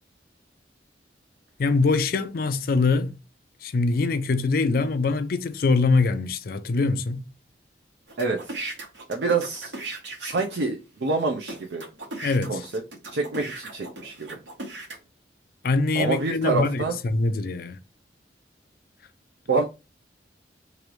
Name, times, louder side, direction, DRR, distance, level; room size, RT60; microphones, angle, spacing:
voice 1, 1.6-3.2 3.6-7.3 12.2-12.6 15.6-17.8, left 3 dB, 55° left, 0.4 m, -23 dB
sound 1, 8.1-10.6 11.2-11.3 11.5-15.0, right 2 dB, 85° right, 1.5 m, -37 dB
voice 2, 8.2-8.5 9.1-9.7 10.2-11.8 12.5-12.6 13.1-14.4 15.9-17.0 19.5-19.6, right 3 dB, 70° right, 0.6 m, -26 dB
3.2 x 2.5 x 4.4 m
head